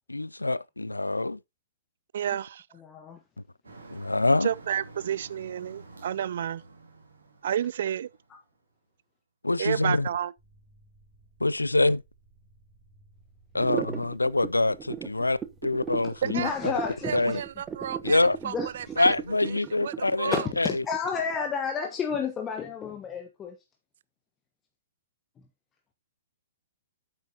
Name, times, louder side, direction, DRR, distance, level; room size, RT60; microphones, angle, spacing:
voice 1, 0.1-1.4 3.9-4.5 9.4-10.1 11.4-12.0 13.5-15.4 15.6-16.7 17.1-17.4 18.0-18.4 19.0-20.7, left 2 dB, 85° left, 0.4 m, -25 dB
voice 2, 2.1-2.6 4.4-6.6 7.4-8.1 9.6-10.3 16.2-16.5 17.0-17.5 17.8-18.2 18.4-18.5 19.0-19.1 19.8-20.4, right 10 dB, 55° right, 0.4 m, -30 dB
voice 3, 2.7-3.2 8.3-8.4 16.2-17.4 18.4-18.9 20.3-23.6, left 6 dB, 20° left, 1.1 m, -31 dB
Motor vehicle (road), 3.6-8.6, right 3 dB, 75° right, 2.4 m, -49 dB
sound 1, 10.4-19.3, right 3 dB, 35° right, 3.9 m, -58 dB
sound 2, 13.6-21.4, right 8 dB, 15° right, 0.7 m, -36 dB
9.2 x 7.6 x 2.8 m
figure-of-eight pair, 115°, 0 cm